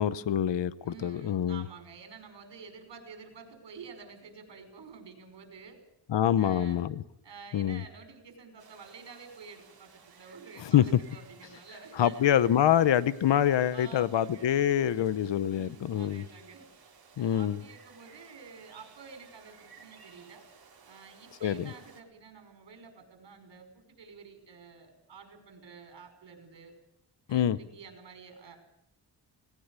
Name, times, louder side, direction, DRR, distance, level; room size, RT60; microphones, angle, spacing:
voice 1, 0.0-1.6 6.1-7.0 7.5-7.8 10.7-10.8 12.0-16.2 17.2-17.6 21.4-21.6 27.3-27.6, left 10 dB, 75° left, 17 dB, 0.9 m, -25 dB
voice 2, 0.8-5.8 6.4-6.8 7.2-12.6 13.7-14.5 15.4-16.7 17.2-20.4 20.8-26.7 27.3-28.6, right 5 dB, 70° right, 5 dB, 5.7 m, -50 dB
sound 1, 8.6-22.0, right 6 dB, 55° right, 3.6 m, -57 dB
19.0 x 18.0 x 8.1 m, 0.80 s
wide cardioid pair, 145°, 44 cm